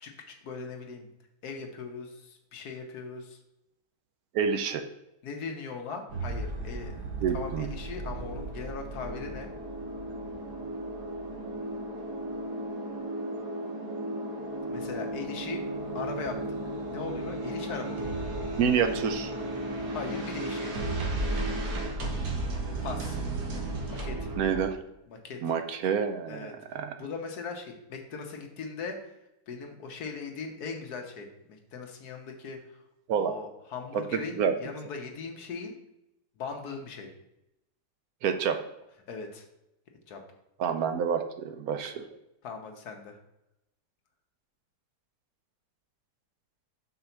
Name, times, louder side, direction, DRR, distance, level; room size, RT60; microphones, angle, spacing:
voice 1, 0.0-1.1 1.4-3.4 5.2-6.9 7.3-9.5 14.7-15.6 15.9-16.4 16.9-18.3 19.9-20.8 22.8-23.2 23.9-24.3 25.1-25.5 26.3-29.1 29.5-32.6 33.1-35.7 36.4-37.1 39.1-39.4 40.1-40.2 42.4-43.2, left 5 dB, 75° left, 3 dB, 1.5 m, -39 dB
voice 2, 4.3-4.8 7.2-7.7 18.6-19.3 24.4-24.8 25.4-27.0 33.1-33.3 33.9-34.5 38.2-38.6 40.6-42.1, right 7 dB, 70° right, 8 dB, 1.0 m, -28 dB
sound 1, 6.1-24.6, right 2 dB, 90° right, 1.6 m, -34 dB
5.5 x 3.9 x 5.7 m, 0.88 s
omnidirectional pair, 1.7 m